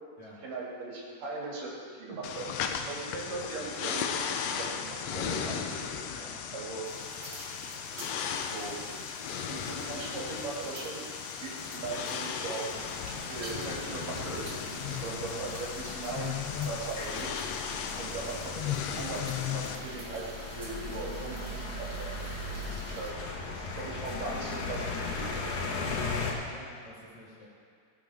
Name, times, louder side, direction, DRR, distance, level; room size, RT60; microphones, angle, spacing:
voice 1, 0.4-1.7 2.0-2.4 2.9-5.8 6.5-6.9 8.4-8.8 9.5-11.1 11.4-12.6 13.1-17.4 18.0-22.2 23.0-23.1 23.6-25.3, right 3 dB, 85° right, -5 dB, 3.8 m, -39 dB
sound 1, 2.2-19.8, left 7 dB, 90° left, 1.4 m, -36 dB
sound 2, 6.8-23.1, right 1 dB, 30° right, 1.8 m, -48 dB
sound 3, 12.7-26.3, left 3 dB, 70° left, 2.6 m, -38 dB
voice 2, 22.5-23.0 25.8-26.1 26.5-27.5, left 1 dB, 40° left, -6 dB, 2.1 m, -49 dB
19.5 x 7.7 x 3.5 m, 2.2 s
omnidirectional pair, 3.7 m